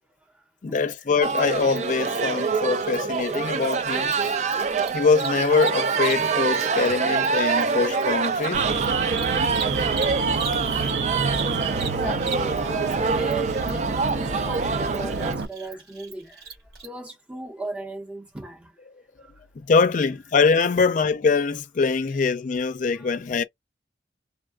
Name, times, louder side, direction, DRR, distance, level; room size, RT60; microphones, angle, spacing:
voice 1, 0.6-8.6 19.6-23.4, left 4 dB, 45° left, 0.4 m, -23 dB
sound 1, 1.2-15.3, right 5 dB, 40° right, 0.4 m, -26 dB
Cricket, 1.3-10.9 11.2-16.8, right 6 dB, 60° right, 1.7 m, -40 dB
Alarm, 8.5-15.5, right 4 dB, 90° right, 0.6 m, -28 dB
voice 2, 11.7-16.4 16.8-18.7 23.0-23.1, right 2 dB, 5° right, 0.9 m, -36 dB
3.4 x 2.2 x 2.4 m
head